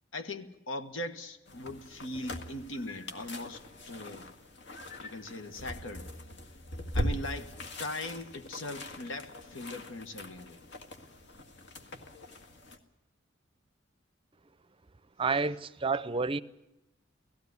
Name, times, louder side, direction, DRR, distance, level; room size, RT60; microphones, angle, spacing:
voice 1, 0.1-4.3 5.0-6.1 6.9-10.6, left 1 dB, 80° left, 1.6 m, -40 dB
sound 1, 1.5-12.8, left 1 dB, 65° left, 1.8 m, -41 dB
voice 2, 15.2-16.4, right 4 dB, 30° right, 0.6 m, -29 dB
17.5 x 15.5 x 9.6 m
head